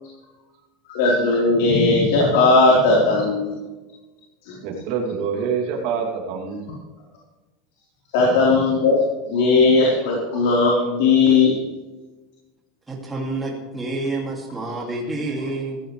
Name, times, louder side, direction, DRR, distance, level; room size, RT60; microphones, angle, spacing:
voice 1, 0.9-3.6 4.4-4.6 8.1-9.0 9.3-11.6, left 3 dB, 70° left, -3 dB, 4.2 m, -17 dB
voice 2, 4.6-6.6, right 6 dB, 50° right, 0 dB, 2.8 m, -26 dB
voice 3, 12.9-15.8, right 2 dB, 10° right, -2 dB, 2.6 m, -28 dB
16.0 x 15.5 x 3.4 m, 1.2 s
supercardioid pair, 170°, 0 cm